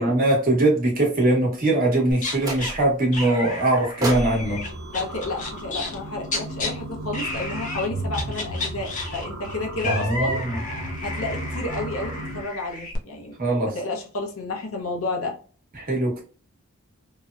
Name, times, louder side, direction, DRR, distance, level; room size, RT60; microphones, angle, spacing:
voice 1, 0.0-4.6 9.8-10.6 13.4-13.7 15.8-16.2, right 2 dB, 40° right, -2 dB, 1.1 m, -21 dB
sound 1, 2.1-2.7 3.1-6.7 7.1-7.9 8.1-13.0, left 2 dB, 35° left, 0.5 m, -32 dB
sound 2, 2.4-3.1 4.0-6.2, right 1 dB, 15° right, 0.6 m, -34 dB
sound 3, 4.4-12.4, right 1 dB, 85° right, 0.6 m, -34 dB
voice 2, 4.9-10.4 11.0-15.4, left 2 dB, 80° left, 1 dB, 0.8 m, -31 dB
2.9 x 2.1 x 2.4 m, 0.39 s
head